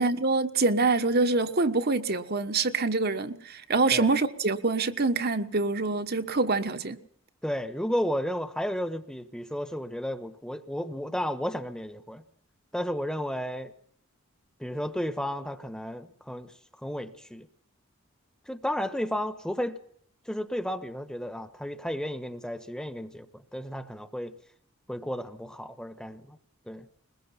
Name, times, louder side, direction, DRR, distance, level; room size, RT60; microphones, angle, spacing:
voice 1, 0.0-7.0, right 3 dB, 50° right, 1.4 m, -25 dB
voice 2, 7.4-12.2 12.7-13.7 14.6-16.5 16.8-17.5 18.5-19.8 20.3-24.3 24.9-26.4 26.7-26.9, equal, 5° left, 1.2 m, -33 dB
21.5 x 21.5 x 5.8 m
head